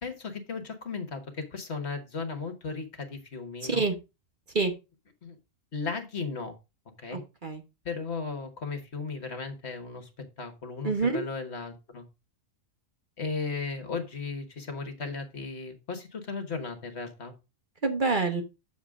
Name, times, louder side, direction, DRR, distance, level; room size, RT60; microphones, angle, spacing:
voice 1, 0.0-3.9 5.2-5.4 5.7-6.5 7.0-7.2 7.8-10.1 10.4-12.0 13.2-17.3, left 4 dB, 55° left, 7 dB, 1.6 m, -36 dB
voice 2, 3.6-3.9 4.5-4.7 7.1-7.6 10.8-11.2 17.8-18.4, right 4 dB, 40° right, 5 dB, 1.3 m, -26 dB
8.4 x 7.2 x 3.6 m, 0.27 s
omnidirectional pair, 1.3 m